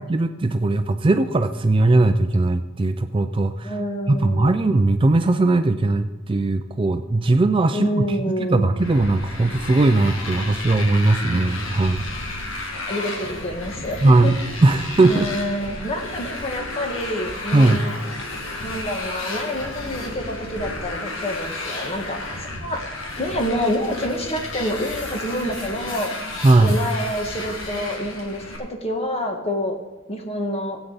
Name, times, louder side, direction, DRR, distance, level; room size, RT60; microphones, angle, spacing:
voice 1, 0.0-3.8 4.1-12.0 12.5-12.8 14.0-15.3 15.8-15.9 17.5-17.8 26.4-26.8, right 2 dB, 25° right, 8 dB, 0.4 m, -19 dB
voice 2, 3.6-4.6 7.7-8.7 12.9-14.3 15.0-17.9 18.6-22.8 23.2-26.1 26.6-29.8 30.1-30.8, equal, 30° left, 3 dB, 1.4 m, -27 dB
Motorcycle, 8.8-28.6, left 2 dB, 75° left, 1.9 m, -32 dB
16.5 x 8.2 x 4.0 m, 1.1 s
head